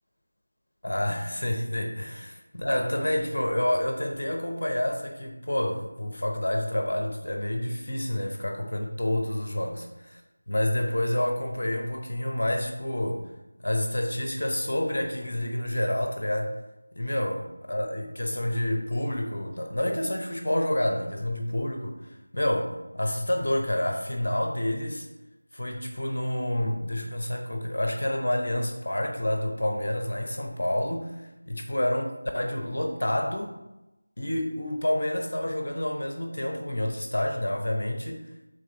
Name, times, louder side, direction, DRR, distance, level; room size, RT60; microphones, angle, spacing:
voice 1, 0.8-10.2 10.5-13.2 13.6-16.5 16.9-25.1 25.5-32.1 32.3-33.6 34.2-38.3, left 1 dB, 55° left, 4 dB, 0.9 m, -28 dB
6.3 x 3.8 x 4.7 m, 0.96 s
figure-of-eight pair, 170°, 0 cm